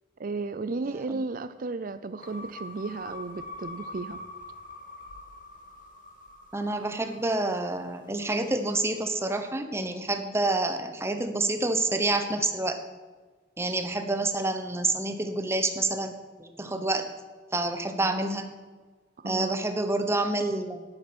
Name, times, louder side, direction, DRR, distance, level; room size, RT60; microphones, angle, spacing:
voice 1, 0.2-4.2 19.2-19.5, right 3 dB, 45° right, 12 dB, 0.4 m, -34 dB
sound 1, 2.2-8.6, left 2 dB, 40° left, 1.9 m, -44 dB
voice 2, 6.5-12.8 13.6-17.1 17.5-18.5 19.2-20.8, right 2 dB, 15° right, 7 dB, 1.0 m, -28 dB
11.5 x 10.5 x 6.1 m, 1.4 s
head